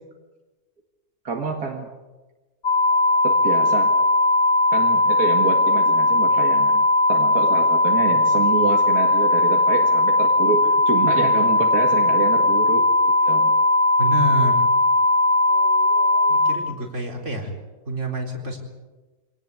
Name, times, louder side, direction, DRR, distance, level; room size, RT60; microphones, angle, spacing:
voice 1, 1.2-1.9 2.9-3.9 4.7-12.9 13.2-13.5 14.4-14.5 15.5-16.6, right 5 dB, 75° right, 2 dB, 2.4 m, -28 dB
sound 1, 2.6-16.5, left 2 dB, 65° left, 3.2 m, -18 dB
voice 2, 14.0-14.6 16.3-17.5 17.9-18.6, right 1 dB, 50° right, 1 dB, 4.4 m, -27 dB
25.0 x 18.5 x 8.3 m, 1.2 s
omnidirectional pair, 1.6 m